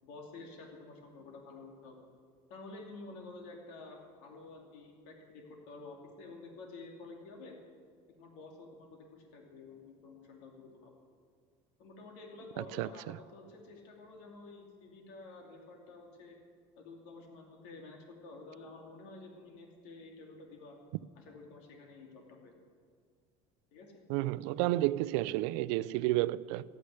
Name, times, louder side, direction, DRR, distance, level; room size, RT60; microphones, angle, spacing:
voice 1, 0.0-2.1 2.5-7.6 8.1-10.9 11.8-16.4 16.8-20.8 21.1-22.6 23.7-23.9, left 3 dB, 75° left, 2.7 m, -50 dB
voice 2, 12.8-13.2 24.1-26.6, right 17 dB, 80° right, 0.5 m, -31 dB
14.5 x 9.5 x 9.7 m
cardioid pair, 170°, 15 cm